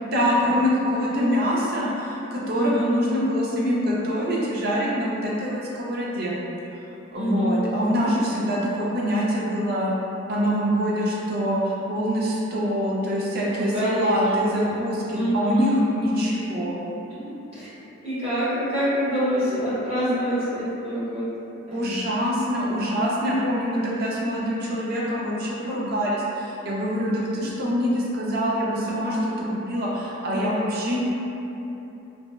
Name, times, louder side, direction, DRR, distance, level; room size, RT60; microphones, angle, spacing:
voice 1, 0.0-6.4 7.1-9.9 10.3-16.7 21.7-31.0, equal, 45° right, -5 dB, 0.4 m, -25 dB
voice 2, 2.5-3.0 7.1-7.6 13.4-15.7 17.5-17.7 18.0-21.2 21.7-21.8 27.1-27.5, equal, 30° right, -13 dB, 0.9 m, -26 dB
3.2 x 2.0 x 2.2 m, 3.0 s
head